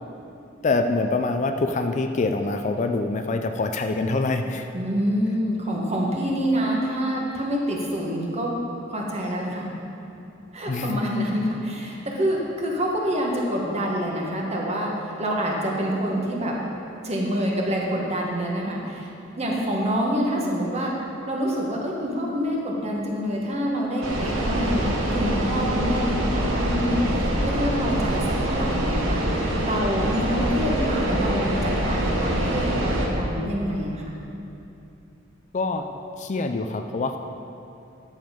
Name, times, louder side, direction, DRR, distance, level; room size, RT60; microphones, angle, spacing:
voice 1, 0.6-4.7 10.7-11.0 35.5-35.8 36.2-37.2, left 3 dB, 40° left, 6 dB, 0.4 m, -25 dB
voice 2, 4.7-8.5 8.9-9.7 10.5-16.5 17.0-20.9 21.3-29.2 29.6-34.1, equal, 35° right, -2 dB, 1.5 m, -26 dB
sound 1, 24.0-33.1, right 1 dB, 85° right, 1.4 m, -25 dB
11.0 x 7.2 x 5.2 m, 2.8 s
head